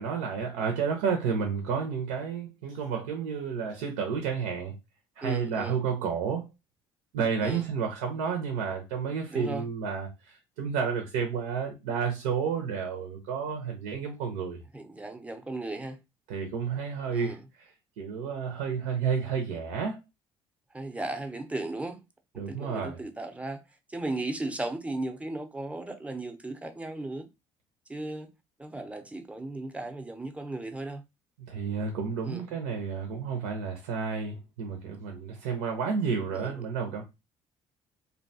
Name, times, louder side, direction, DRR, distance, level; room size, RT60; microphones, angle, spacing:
voice 1, 0.0-4.7 5.2-6.4 7.1-14.6 16.3-20.0 22.4-23.0 31.5-37.0, right 6 dB, 90° right, 0.6 m, -31 dB
voice 2, 5.2-5.8 7.4-7.6 9.3-9.7 14.7-16.0 17.1-17.4 20.7-22.0 22.3-23.6 23.9-27.3 27.9-28.3 28.6-31.0 32.2-32.4 36.3-36.5, right 2 dB, 10° right, 0.6 m, -36 dB
2.7 x 2.2 x 2.6 m
supercardioid pair, 75°, 12 cm